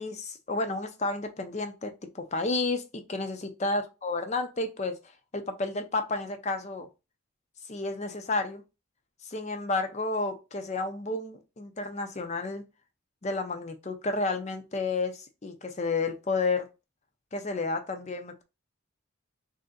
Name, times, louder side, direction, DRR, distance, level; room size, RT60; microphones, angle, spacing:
voice 1, 0.0-5.0 5.3-6.9 7.7-8.6 9.2-12.6 13.2-16.7 17.3-18.4, left 3 dB, 30° left, 0.5 m, -31 dB
3.2 x 2.7 x 3.8 m
head